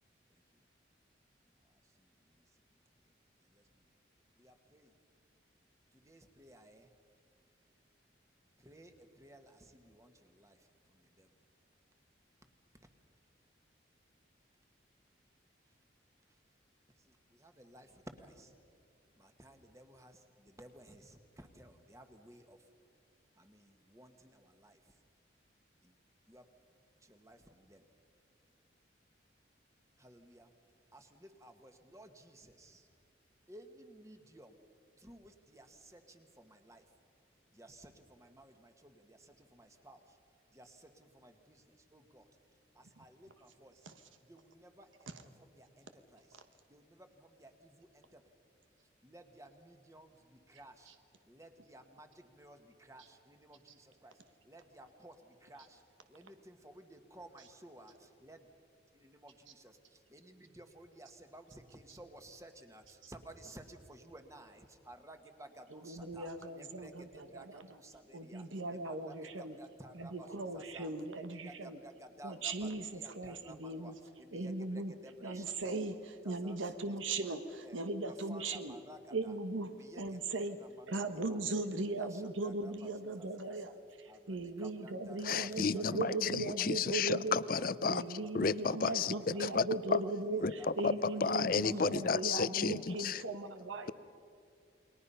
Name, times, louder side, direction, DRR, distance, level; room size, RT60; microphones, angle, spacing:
voice 1, 4.4-4.9 6.0-6.8 8.6-8.9 9.2-10.1 10.4-10.5 11.2-11.3 17.4-17.9 18.2-18.5 19.2-20.1 20.6-22.6 23.4-24.7 26.3-26.4 27.1-27.4 27.7-27.8 30.0-30.5 30.9-32.8 33.5-34.5 35.0-36.8 37.6-37.9 38.2-39.2 39.5-40.0 40.5-40.9 41.1-41.6 41.9-42.2 42.8-43.7 44.3-44.9 45.6-45.8 46.1-46.2 46.7-47.1 47.4-48.0 49.0-50.1 50.5-50.9 51.3-52.1 52.3-54.1 54.5-55.1 55.4-55.8 56.1-57.9 58.2-58.4 58.9-59.7 60.1-66.3 66.8-68.4 68.9-69.1 69.6-70.3 70.5-70.9 71.4-72.7 73.0-73.9 74.2-74.5 75.0-75.5 76.2-76.6 77.6-77.7 78.0-79.0 79.8-80.0 81.0-81.1 82.0-82.1 82.4-82.5 83.2-83.5 84.1-84.2 84.6-85.5 85.7-85.8 86.7-86.8 88.4-88.5 89.5-89.6 90.6-90.7 93.8-93.9, right 1 dB, 15° right, 6 dB, 1.5 m, -55 dB
voice 2, 65.7-67.8 68.1-69.6 69.9-71.8 72.2-74.0 74.3-74.9 75.2-78.8 79.1-80.6 80.9-87.4 87.8-93.9, right 2 dB, 90° right, 8 dB, 1.3 m, -38 dB
voice 3, 85.2-90.0 90.4-90.5 90.8-93.2, left 5 dB, 45° left, 17 dB, 0.5 m, -32 dB
29.5 x 21.5 x 5.6 m, 2.4 s
head